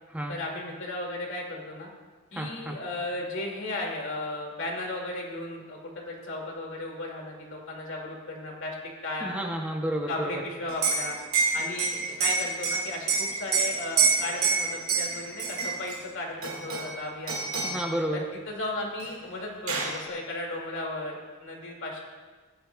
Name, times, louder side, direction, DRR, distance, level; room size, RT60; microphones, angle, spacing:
voice 1, 0.3-1.9 2.3-8.8 9.0-9.4 10.1-11.2 11.5-17.4 18.1-22.0, left 2 dB, 60° left, -1 dB, 2.2 m, -35 dB
voice 2, 2.3-2.7 9.2-10.4 17.6-18.2, right 1 dB, 5° right, 1 dB, 0.7 m, -31 dB
Liquid, 10.7-16.0 16.4-17.0 17.3-17.9 19.0-19.1 19.4-20.0, right 5 dB, 70° right, 1.8 m, -27 dB
16.0 x 10.5 x 2.3 m, 1.4 s
head